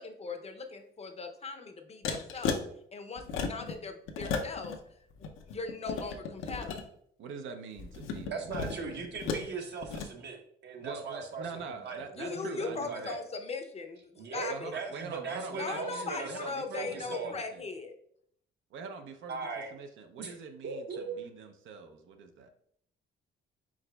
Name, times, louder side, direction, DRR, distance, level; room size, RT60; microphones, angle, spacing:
voice 1, 0.0-2.6 2.9-4.7 5.2-6.9 12.2-14.0 14.3-14.7 15.6-17.9, left 4 dB, 30° left, 5 dB, 0.5 m, -39 dB
sound 1, 2.0-2.6 3.2-3.7 4.1-4.8 5.1-6.8 7.8-9.5 9.8-10.1, left 5 dB, 85° left, 0.5 m, -35 dB
voice 2, 7.2-8.9 10.8-13.2 14.5-17.6 18.7-19.4 19.7-22.5, right 5 dB, 75° right, 6 dB, 0.6 m, -44 dB
voice 3, 8.3-11.5 11.8-12.0 12.3-13.2 14.2-17.3 19.3-19.7 20.2-20.4 20.6-21.2, right 4 dB, 60° right, 3 dB, 0.9 m, -39 dB
4.8 x 4.2 x 2.2 m, 0.68 s
cardioid pair, 90°, 20 cm